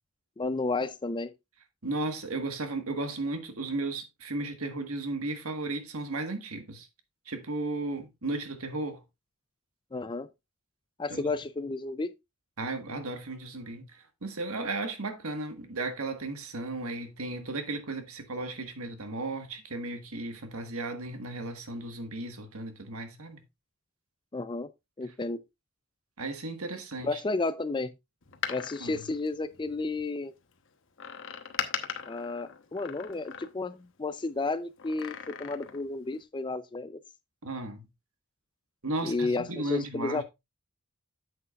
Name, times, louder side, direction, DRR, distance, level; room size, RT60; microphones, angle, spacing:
voice 1, 0.4-1.3 9.9-10.3 11.0-12.1 24.3-24.7 25.0-25.4 27.0-27.9 28.5-30.3 32.1-37.0 39.0-40.2, left 3 dB, 20° left, 0.4 m, -32 dB
voice 2, 1.8-6.9 7.2-9.0 11.1-11.3 12.6-13.8 14.2-23.4 26.2-27.2 28.8-28.9 37.4-37.9 38.8-40.2, right 2 dB, 70° right, 1.5 m, -35 dB
Door, 28.2-30.0 31.0-33.9 34.8-35.9 36.2-36.3, left 8 dB, 60° left, 1.0 m, -39 dB
9.5 x 8.0 x 2.4 m
head